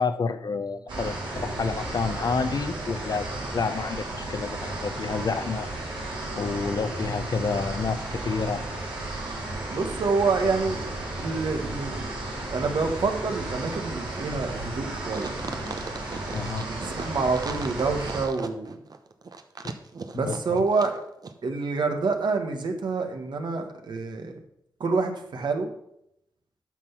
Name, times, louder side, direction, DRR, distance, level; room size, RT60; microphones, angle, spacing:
voice 1, 0.0-3.3 3.5-5.7 6.4-8.7 16.3-16.7 19.6-19.7 20.1-20.6, left 4 dB, 55° left, 11 dB, 0.7 m, -29 dB
sound 1, 0.9-18.2, right 2 dB, 90° right, 3.9 m, -34 dB
voice 2, 9.7-10.9 11.2-12.1 12.5-15.4 16.6-18.8 20.1-21.0 21.4-24.3 24.8-25.7, right 4 dB, 70° right, 5 dB, 1.6 m, -27 dB
sound 2, 15.1-21.0 21.2-21.3, right 4 dB, 55° right, 0.9 m, -38 dB
9.2 x 5.9 x 5.8 m, 0.77 s
cardioid pair, 65°, 8 cm